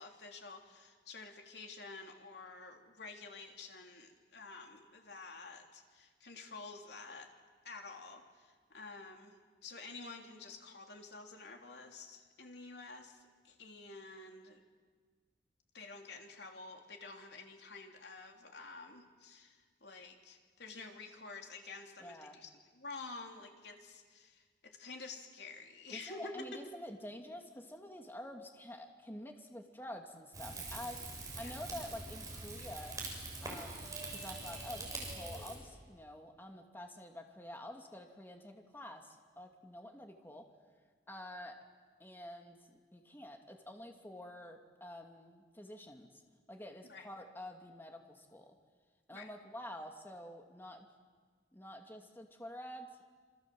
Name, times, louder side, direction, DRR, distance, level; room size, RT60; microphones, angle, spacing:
voice 1, 0.0-7.3 7.6-9.3 9.6-14.6 15.7-26.6 31.4-31.5 46.9-47.1 49.1-49.3, left 3 dB, 65° left, 3 dB, 3.4 m, -50 dB
voice 2, 22.0-22.4 25.9-33.0 33.4-40.5 41.1-41.6 42.0-46.2 46.5-48.5 49.1-50.9 51.5-52.9, left 1 dB, 10° left, 3 dB, 2.5 m, -48 dB
Rain / Fire, 30.3-35.6, right 3 dB, 20° right, 6.4 m, -44 dB
27.5 x 26.5 x 7.9 m, 1.5 s
head